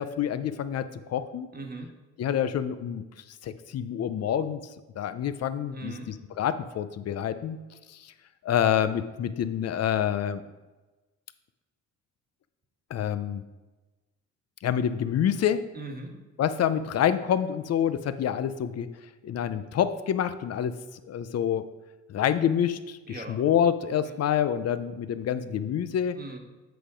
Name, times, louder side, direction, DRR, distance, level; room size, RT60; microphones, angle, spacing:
voice 1, 0.0-1.5 2.2-3.0 3.4-4.6 5.0-7.6 7.9-8.1 8.4-10.4 12.9-13.4 14.6-15.6 16.4-18.9 19.2-20.8 21.1-21.7 22.1-26.2, left 9 dB, 55° left, 12 dB, 0.6 m, -27 dB
voice 2, 1.5-1.9 5.7-6.1 15.7-16.2 23.1-23.4 23.9-24.2 26.1-26.4, right 2 dB, 30° right, 3 dB, 1.4 m, -40 dB
8.0 x 4.9 x 5.1 m, 1.2 s
cardioid pair, 90°, 30 cm